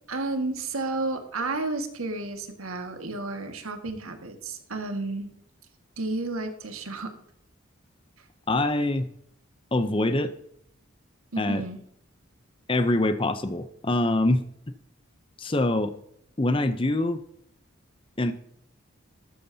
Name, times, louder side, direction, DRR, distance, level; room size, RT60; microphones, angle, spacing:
voice 1, 0.1-5.3 6.0-7.1 8.2-8.3 11.3-11.8, right 2 dB, 90° right, 6 dB, 1.8 m, -32 dB
voice 2, 8.5-9.1 9.7-10.3 11.4-11.6 12.7-14.4 15.4-15.9 16.4-17.2 18.2-18.3, left 2 dB, 25° left, 10 dB, 0.6 m, -24 dB
13.5 x 12.0 x 2.8 m, 0.70 s
head